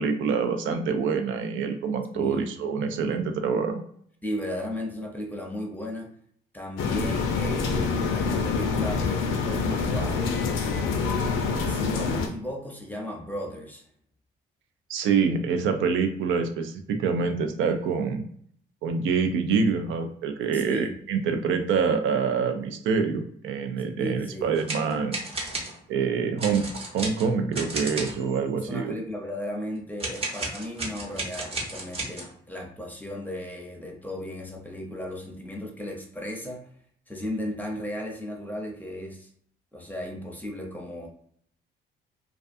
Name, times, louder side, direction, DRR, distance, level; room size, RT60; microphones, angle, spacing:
voice 1, 0.0-3.8 14.9-18.2 18.8-25.2 25.9-26.7 26.9-28.9, right 5 dB, 80° right, 6 dB, 0.4 m, -26 dB
voice 2, 2.1-2.5 4.2-6.1 6.5-10.4 10.9-13.8 20.5-21.0 24.0-24.6 28.7-36.6 37.1-39.3 39.7-41.1, left 1 dB, 10° left, 1 dB, 0.7 m, -35 dB
sound 1, 6.8-12.3, left 5 dB, 85° left, 0.5 m, -26 dB
sound 2, 24.6-25.8 26.4-28.4 30.0-32.3, right 2 dB, 30° right, 0.8 m, -33 dB
2.3 x 2.3 x 2.5 m, 0.62 s
cardioid pair, 90°, 20 cm